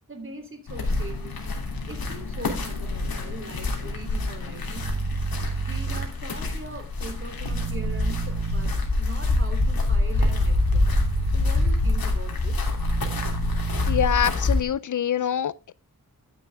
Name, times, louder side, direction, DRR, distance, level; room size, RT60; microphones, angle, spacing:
voice 1, 0.1-1.4 1.9-4.9 5.6-10.9 11.3-12.7, right 2 dB, 35° right, 3.3 m, -41 dB
sound 1, 0.7-14.6, left 2 dB, 85° left, 3.0 m, -26 dB
sound 2, 4.7-6.1 7.4-8.7 10.1-11.4 12.7-14.1, right 6 dB, 70° right, 1.0 m, -30 dB
voice 2, 13.9-15.7, left 9 dB, 60° left, 0.5 m, -25 dB
11.0 x 9.9 x 3.5 m
wide cardioid pair, 130°, 35 cm